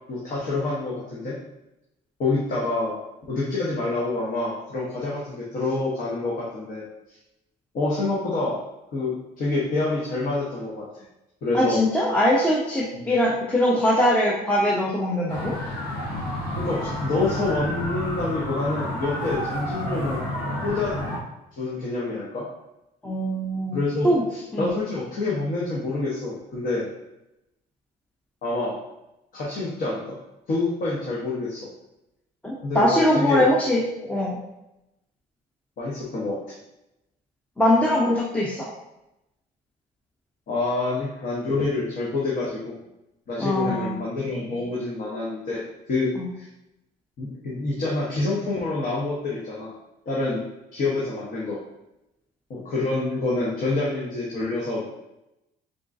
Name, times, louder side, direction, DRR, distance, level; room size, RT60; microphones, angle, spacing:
voice 1, 0.1-1.4 2.2-3.0 3.3-6.8 7.7-8.6 8.9-11.0 11.4-11.8 12.9-13.1 16.6-20.2 20.6-20.9 21.5-22.5 23.7-26.9 28.4-28.8 29.3-30.2 30.5-31.7 32.6-33.5 35.8-36.4 40.5-42.8 43.3-45.6 45.9-46.1 46.4-46.5 47.2-49.7 50.1-50.5 50.7-51.6 52.5-54.9, left 3 dB, 55° left, -5 dB, 1.0 m, -27 dB
voice 2, 11.5-15.6 23.0-24.2 24.5-24.7 32.4-34.4 37.6-38.7 43.4-43.9 46.2-46.3, left 1 dB, 10° left, -4 dB, 0.6 m, -22 dB
sound 1, 15.3-21.2, equal, 75° left, 1.2 m, -30 dB
3.8 x 3.6 x 2.5 m, 0.91 s
cardioid pair, 110°, 17 cm